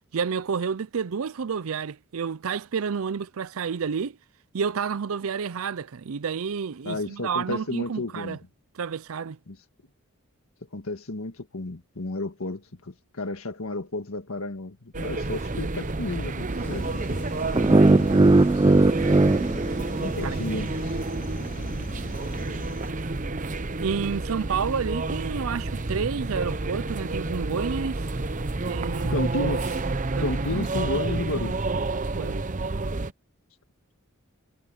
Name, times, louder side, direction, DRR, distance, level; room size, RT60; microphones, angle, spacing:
voice 1, 0.1-4.2 4.5-8.4 8.7-9.4 20.2-20.4 20.7-20.8 23.8-28.0 28.7-29.1 29.4-29.5 30.1-30.7 32.1-32.5, right 6 dB, 85° right, 0.5 m, -30 dB
voice 2, 6.8-8.4 9.5-9.6 10.7-16.9 20.0-21.0 29.1-29.8 30.2-31.5, left 2 dB, 90° left, 1.7 m, -32 dB
sound 1, 14.9-33.1, right 2 dB, 35° right, 0.8 m, -30 dB
sound 2, 16.6-22.9, left 1 dB, 40° left, 4.5 m, -40 dB
sound 3, 17.5-20.6, right 2 dB, 20° right, 0.4 m, -19 dB
head